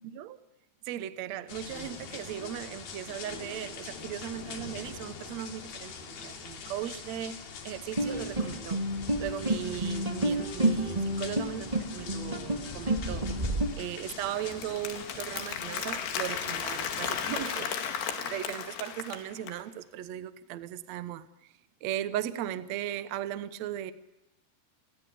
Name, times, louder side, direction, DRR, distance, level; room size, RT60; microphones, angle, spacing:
voice 1, 0.0-0.4 0.8-8.8 9.2-13.3 13.7-21.5 21.8-23.9, right 11 dB, 75° right, 13 dB, 1.6 m, -37 dB
sound 1, 1.5-17.5, left 5 dB, 65° left, 4.5 m, -44 dB
sound 2, 8.0-13.7, right 1 dB, 10° right, 1.9 m, -30 dB
Applause, 13.8-19.6, left 8 dB, 90° left, 4.2 m, -35 dB
30.0 x 20.5 x 8.6 m, 0.97 s
omnidirectional pair, 4.7 m